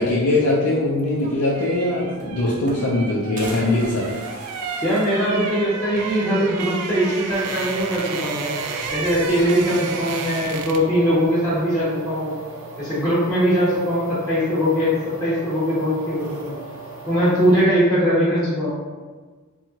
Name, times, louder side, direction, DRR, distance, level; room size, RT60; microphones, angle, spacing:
voice 1, 0.0-4.1, left 2 dB, 80° left, -5 dB, 0.4 m, -21 dB
sound 1, 1.0-11.0 11.3-11.5, right 5 dB, 90° right, 0.3 m, -32 dB
sound 2, 1.7-3.0 3.4-6.0 6.4-6.5 6.7-6.8 8.0-8.5 8.8-9.6 10.6-11.2, right 1 dB, 35° right, 0.5 m, -40 dB
voice 2, 4.8-8.5 8.9-12.4 12.8-14.9 15.2-16.6 17.1-18.7, equal, 15° left, -11 dB, 0.6 m, -21 dB
sound 3, 7.3-17.6, right 2 dB, 60° right, 0.9 m, -39 dB
2.8 x 2.3 x 2.7 m, 1.4 s
head